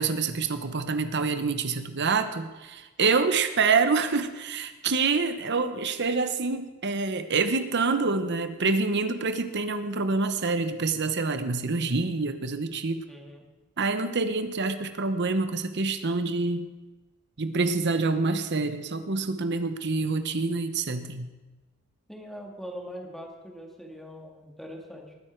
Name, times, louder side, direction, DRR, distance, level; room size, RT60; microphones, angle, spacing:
voice 1, 0.0-13.0 13.8-16.7 17.4-21.3, right 4 dB, 55° right, 10 dB, 1.0 m, -26 dB
voice 2, 13.1-13.5 22.1-25.1, equal, ahead, 1 dB, 2.0 m, -42 dB
19.5 x 9.5 x 4.6 m, 1.2 s
head